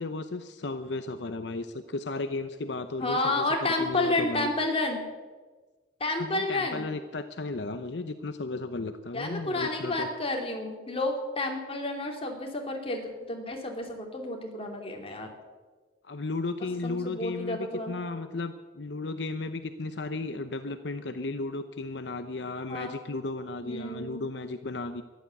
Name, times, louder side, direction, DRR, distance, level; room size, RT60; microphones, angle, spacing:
voice 1, 0.0-4.5 6.2-10.1 16.0-25.0, left 3 dB, 75° left, 9 dB, 0.8 m, -34 dB
voice 2, 3.0-5.0 6.0-6.8 9.1-15.3 16.8-17.9 22.7-22.9 23.6-24.2, left 2 dB, 35° left, 2 dB, 2.9 m, -30 dB
14.0 x 11.5 x 8.3 m, 1.3 s
head